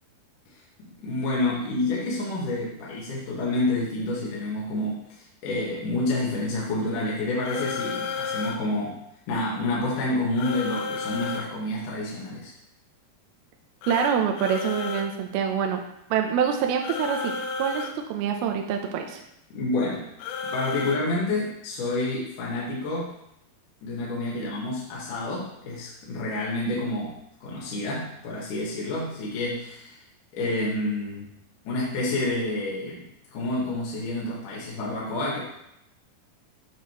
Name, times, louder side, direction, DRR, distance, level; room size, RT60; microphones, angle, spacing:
voice 1, 0.8-9.0 9.3-12.5 19.5-20.1 20.4-23.1 23.8-30.0 30.3-31.3 31.6-33.1 33.3-35.4, left 2 dB, 60° left, -6 dB, 2.8 m, -29 dB
sound 1, 7.4-8.6 10.4-11.5 13.8-15.1 16.8-17.9 20.2-21.0, left 4 dB, 90° left, 2.6 m, -32 dB
voice 2, 13.9-15.8 16.1-17.3 17.6-19.2, right 8 dB, 80° right, 3 dB, 2.5 m, -25 dB
9.5 x 6.4 x 3.1 m, 0.79 s
omnidirectional pair, 4.5 m